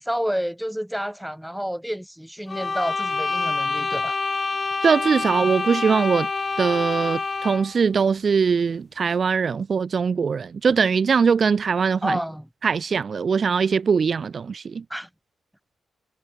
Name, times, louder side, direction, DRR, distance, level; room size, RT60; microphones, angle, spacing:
voice 1, 0.0-4.2 12.0-12.5 14.9-15.1, equal, ahead, 4.0 m, -29 dB
sound 1, 2.5-7.8, left 4 dB, 35° left, 1.6 m, -27 dB
voice 2, 4.8-6.3 6.6-12.2 12.6-14.8, right 5 dB, 50° right, 0.7 m, -21 dB
cardioid pair, 95°, 0 cm